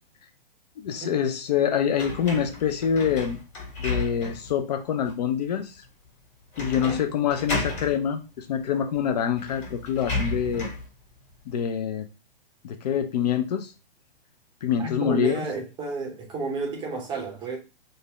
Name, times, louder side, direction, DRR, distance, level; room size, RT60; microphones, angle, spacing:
voice 1, 0.8-3.4 3.8-5.8 6.6-10.7 11.5-12.1 12.6-13.7 14.6-15.4, left 8 dB, 45° left, 0.4 m, -26 dB
sound 1, 2.0-4.5 5.0-5.1 6.5-7.0 7.3-7.9 8.9-9.0 9.4-10.9, left 2 dB, 25° left, 1.3 m, -32 dB
voice 2, 6.6-7.0 14.8-17.6, right 3 dB, 15° right, 0.6 m, -31 dB
2.6 x 2.1 x 3.6 m
figure-of-eight pair, 115°, 29 cm